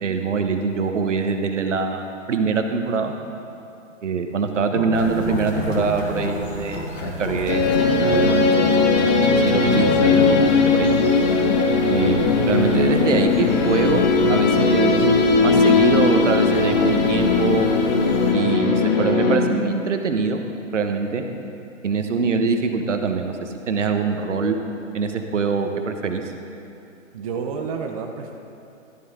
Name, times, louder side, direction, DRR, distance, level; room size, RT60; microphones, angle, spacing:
voice 1, 0.0-3.1 4.0-7.8 8.1-9.1 9.4-10.9 11.9-15.1 15.4-17.6 18.3-20.4 20.7-21.2 21.8-24.6 24.9-26.2, right 5 dB, 70° right, 6 dB, 1.2 m, -24 dB
sound 1, 4.7-6.4 6.7-10.5, left 2 dB, 80° left, 2.2 m, -29 dB
sound 2, 4.9-18.3, left 1 dB, 60° left, 2.7 m, -35 dB
sound 3, 7.5-19.4, left 4 dB, 35° left, 1.0 m, -18 dB
voice 2, 27.1-28.3, right 5 dB, 30° right, 2 dB, 0.6 m, -29 dB
13.0 x 11.0 x 3.7 m, 2.7 s
hypercardioid pair, 145°, 38 cm